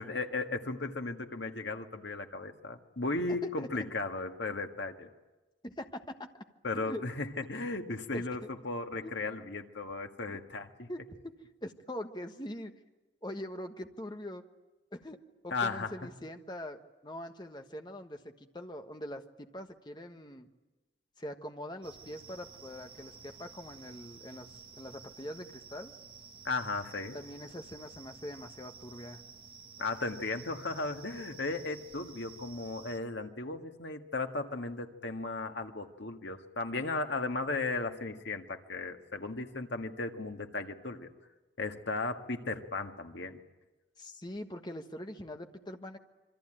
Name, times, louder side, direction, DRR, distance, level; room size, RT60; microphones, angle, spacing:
voice 1, 0.0-5.1 6.6-10.9 15.5-15.9 26.5-27.2 29.8-41.1 41.6-43.4, left 3 dB, 75° left, 4 dB, 1.8 m, -36 dB
voice 2, 3.4-3.8 5.6-6.0 6.7-7.0 8.1-8.5 9.0-9.1 10.3-10.4 10.9-12.7 13.2-14.4 14.9-15.2 15.4-20.5 21.2-25.9 27.1-29.2 44.0-46.0, left 1 dB, 25° left, 5 dB, 1.3 m, -43 dB
sound 1, 21.8-33.0, right 5 dB, 25° right, 1.2 m, -52 dB
26.5 x 24.0 x 9.0 m, 1.1 s
head